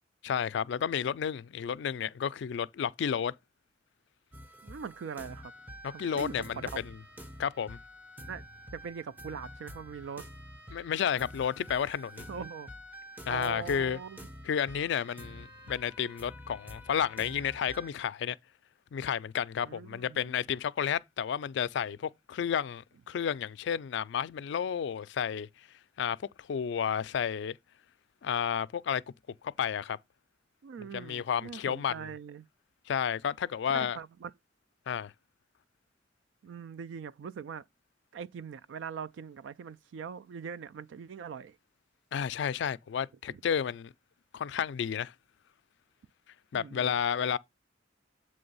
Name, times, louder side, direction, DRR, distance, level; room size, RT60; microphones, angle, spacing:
voice 1, 0.2-3.3 6.0-7.0 7.4-7.8 10.7-12.2 13.3-14.0 14.4-18.4 18.9-25.5 26.0-27.6 28.2-29.0 29.4-30.0 30.9-32.1 32.9-34.0 34.9-35.1 42.1-43.9 44.3-45.1 46.5-47.4, left 8 dB, 65° left, 0.3 m, -31 dB
sound 1, 4.3-17.9, equal, 10° right, 0.7 m, -48 dB
voice 2, 4.6-5.5 5.9-6.7 8.3-8.5 8.7-10.3 12.3-12.7 13.3-14.3 19.6-20.4 30.6-32.5 33.7-34.3 36.4-37.6 38.1-41.6 43.3-43.4 46.5-46.9, right 6 dB, 75° right, 0.3 m, -42 dB
7.8 x 3.2 x 5.4 m
head